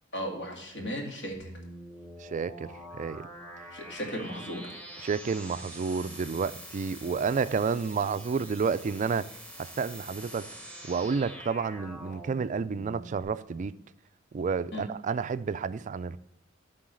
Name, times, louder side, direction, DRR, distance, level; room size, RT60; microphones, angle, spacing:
voice 1, 0.1-1.5 3.7-4.7 14.7-14.9, equal, 65° left, 2.3 m, -36 dB
sound 1, 1.3-13.2, right 1 dB, 5° left, 1.3 m, -45 dB
voice 2, 2.2-3.3 5.0-10.5 10.9-13.7 14.3-16.2, right 5 dB, 40° right, 0.3 m, -30 dB
11.5 x 4.0 x 6.3 m
head